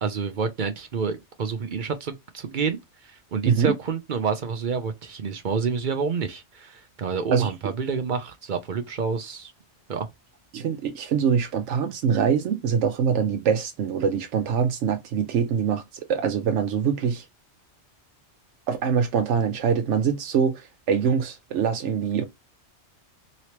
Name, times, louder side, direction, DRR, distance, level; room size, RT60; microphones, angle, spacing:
voice 1, 0.0-2.8 3.0-9.5 9.9-10.1, right 5 dB, 55° right, 0.6 m, -28 dB
voice 2, 10.5-17.3 18.7-22.2, right 7 dB, 80° right, 0.9 m, -24 dB
3.1 x 2.9 x 2.9 m
omnidirectional pair, 1.2 m